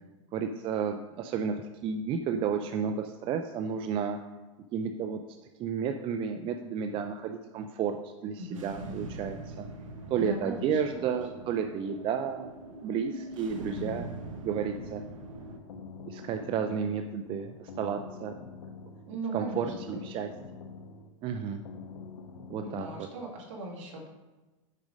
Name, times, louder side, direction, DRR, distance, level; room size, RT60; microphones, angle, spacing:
voice 1, 0.3-4.2 4.7-5.2 5.6-9.7 10.1-12.5 12.8-14.1 14.4-15.0 16.1-18.3 19.3-20.3 21.2-21.6 22.5-22.9, right 7 dB, 30° right, 6 dB, 0.5 m, -32 dB
voice 2, 8.4-9.1 10.1-11.1 13.5-14.0 19.1-19.7 22.6-24.1, right 1 dB, 70° right, 0 dB, 2.0 m, -39 dB
sound 1, 8.6-15.6, right 2 dB, 90° right, 1.0 m, -43 dB
sound 2, 15.2-23.1, left 4 dB, 75° left, 0.8 m, -46 dB
6.5 x 5.1 x 5.1 m, 1.2 s
hypercardioid pair, 115°, 16 cm